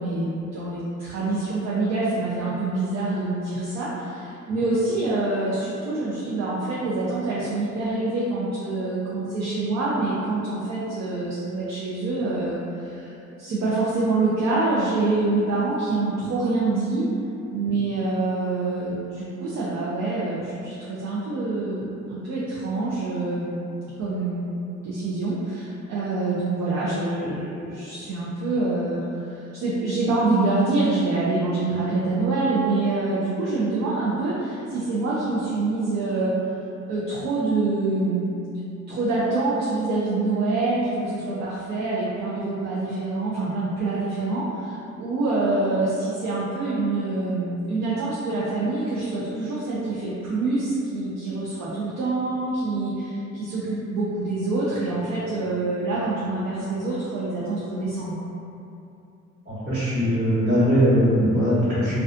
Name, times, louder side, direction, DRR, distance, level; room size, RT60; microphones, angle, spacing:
voice 1, 0.0-13.1 13.4-17.1 17.5-23.6 24.0-24.5 24.8-36.3 36.9-38.3 38.9-58.1, right 2 dB, 60° right, -8 dB, 0.5 m, -26 dB
voice 2, 59.5-62.0, equal, 30° right, -16 dB, 1.1 m, -21 dB
2.3 x 2.3 x 2.4 m, 2.7 s
cardioid pair, 90°, 30 cm